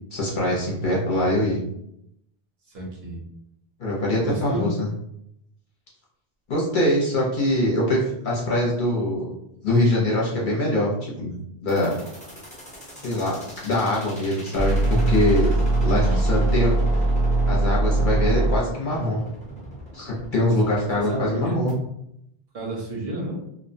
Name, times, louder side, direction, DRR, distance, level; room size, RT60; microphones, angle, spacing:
voice 1, 0.1-1.6 3.8-4.9 6.5-9.3 9.6-11.3 11.6-12.0 13.0-13.4 13.6-15.5 15.8-16.7 17.5-19.2 19.9-21.7, left 1 dB, 55° left, -4 dB, 0.7 m, -23 dB
voice 2, 2.7-3.2 4.2-4.7 15.8-16.2 20.4-20.5 20.9-21.7 22.5-23.4, right 2 dB, 70° right, -2 dB, 1.0 m, -31 dB
sound 1, 11.7-21.7, equal, 10° left, 0.5 m, -42 dB
sound 2, 14.6-18.6, right 2 dB, 50° right, 0.4 m, -21 dB
2.5 x 2.1 x 2.6 m, 0.77 s
omnidirectional pair, 1.0 m